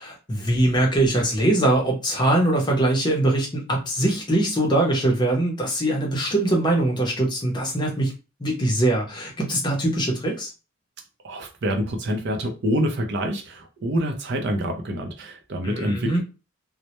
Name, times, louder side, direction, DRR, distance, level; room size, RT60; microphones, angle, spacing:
voice 1, 0.0-8.1 8.4-10.5 15.6-16.2, right 1 dB, 20° left, 0.6 m, -22 dB
voice 2, 11.2-16.2, equal, 55° right, 0.5 m, -26 dB
2.1 x 2.0 x 2.8 m
head